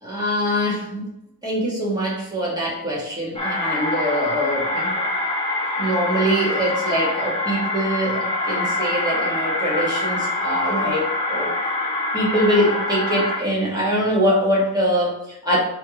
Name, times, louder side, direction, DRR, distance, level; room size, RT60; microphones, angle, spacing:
voice 1, 0.0-1.1 1.4-5.1 5.8-11.5 12.1-15.6, equal, 10° right, -6 dB, 2.6 m, -23 dB
sound 1, 3.3-13.4, left 2 dB, 15° left, 1.5 m, -25 dB
9.5 x 3.6 x 3.4 m, 0.84 s
wide cardioid pair, 160°, 36 cm